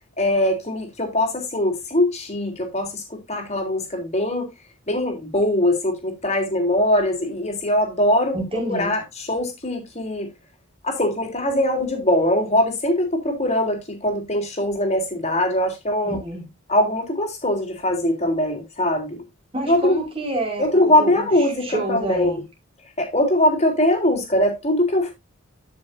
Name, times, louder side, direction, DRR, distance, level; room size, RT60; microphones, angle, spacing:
voice 1, 0.2-4.5 4.9-8.4 8.7-10.3 10.8-16.2 16.7-19.2 19.7-20.0 20.6-22.4 23.0-25.1, left 1 dB, 35° left, 3.6 m, -21 dB
voice 2, 8.3-9.0 16.0-16.5 19.5-21.3 21.6-22.4, right 1 dB, 25° right, 5.0 m, -28 dB
13.0 x 6.5 x 2.7 m
head